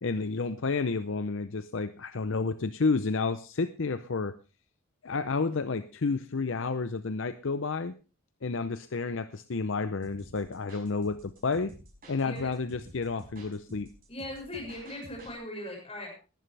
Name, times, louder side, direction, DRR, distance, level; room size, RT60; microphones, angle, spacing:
voice 1, 0.0-4.3 5.0-7.9 8.4-11.7 12.1-13.9, left 4 dB, 60° left, 12 dB, 0.6 m, -30 dB
sound 1, 10.0-15.3, right 1 dB, 40° right, 5.8 m, -51 dB
voice 2, 12.2-12.5 14.1-16.1, left 1 dB, 25° left, 0 dB, 6.9 m, -39 dB
19.5 x 11.0 x 3.3 m, 0.32 s
head